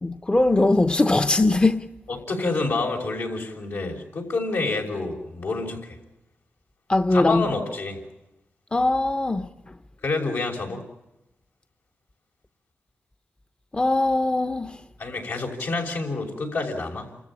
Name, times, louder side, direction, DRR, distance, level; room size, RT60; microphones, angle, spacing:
voice 1, 0.0-1.9 6.9-7.4 8.7-9.5 13.7-14.8, left 2 dB, 25° left, 0.8 m, -21 dB
voice 2, 2.1-6.0 7.1-8.0 10.0-10.8 15.0-17.1, left 3 dB, 80° left, 5.7 m, -28 dB
29.0 x 14.5 x 9.9 m
cardioid pair, 60°, 4 cm